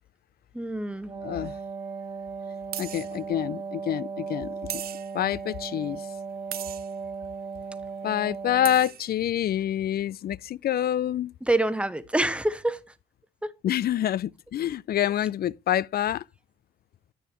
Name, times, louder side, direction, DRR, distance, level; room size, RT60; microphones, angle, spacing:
voice 1, 0.5-1.1 11.4-12.8 13.4-13.5, right 1 dB, 5° right, 1.0 m, -26 dB
Wind instrument woodwind instrument, 0.9-8.9, right 5 dB, 25° right, 1.5 m, -37 dB
voice 2, 1.2-1.5 2.8-4.8 5.1-6.0 8.0-11.3 13.6-16.2, left 11 dB, 50° left, 0.4 m, -27 dB
sound 1, 1.5-1.6 2.7-3.2 4.7-5.3 6.5-6.9 8.3-8.4 8.6-9.1, right 12 dB, 50° right, 0.4 m, -37 dB
10.0 x 8.5 x 2.9 m
cardioid pair, 90°, 20 cm